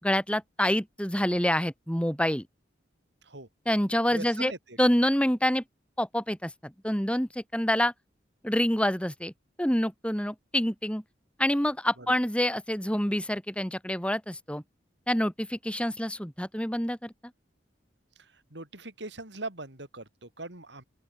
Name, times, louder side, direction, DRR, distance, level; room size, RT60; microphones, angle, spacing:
voice 1, 0.0-2.4 3.7-4.5 4.8-5.6 6.0-7.9 8.4-9.3 9.6-11.0 11.4-14.6 15.1-17.1, equal, 5° left, 4.4 m, -27 dB
voice 2, 4.1-4.8 12.0-12.1 18.2-20.8, right 2 dB, 70° right, 5.1 m, -41 dB
open air
head